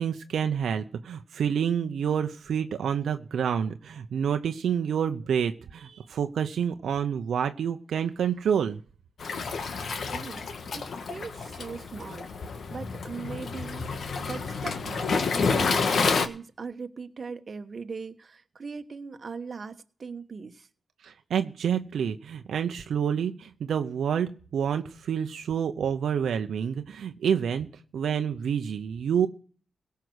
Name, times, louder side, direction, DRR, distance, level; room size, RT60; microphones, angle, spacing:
voice 1, 0.0-8.8 21.0-27.7 27.9-29.3, right 8 dB, 85° right, 0.8 m, -28 dB
Waves surf, 9.2-16.3, left 4 dB, 65° left, 1.4 m, -29 dB
voice 2, 10.1-10.5 10.7-20.7, right 5 dB, 50° right, 1.2 m, -40 dB
17.0 x 5.8 x 8.0 m
cardioid pair, 65°, 0 cm